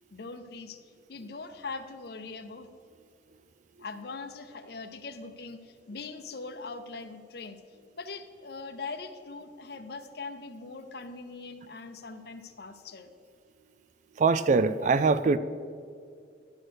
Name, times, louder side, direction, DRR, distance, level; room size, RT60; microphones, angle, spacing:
voice 1, 0.1-0.8 1.1-2.7 3.8-7.6 7.9-13.1, left 4 dB, 60° left, 9 dB, 0.7 m, -41 dB
voice 2, 14.2-15.4, right 4 dB, 40° right, 13 dB, 0.3 m, -23 dB
11.0 x 4.8 x 6.3 m, 2.2 s
head